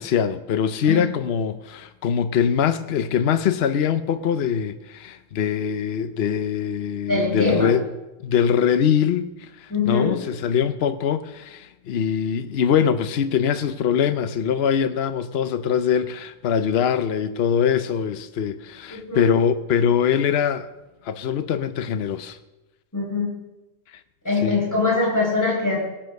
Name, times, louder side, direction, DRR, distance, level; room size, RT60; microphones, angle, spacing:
voice 1, 0.0-7.8 8.2-20.7 21.0-22.4 23.9-24.0 24.4-24.6, left 8 dB, 70° left, 0.9 m, -23 dB
voice 2, 7.1-7.7 9.7-10.2 18.9-19.3 22.9-23.3 24.2-25.8, left 3 dB, 15° left, 4.8 m, -22 dB
19.0 x 8.8 x 6.5 m
omnidirectional pair, 1.1 m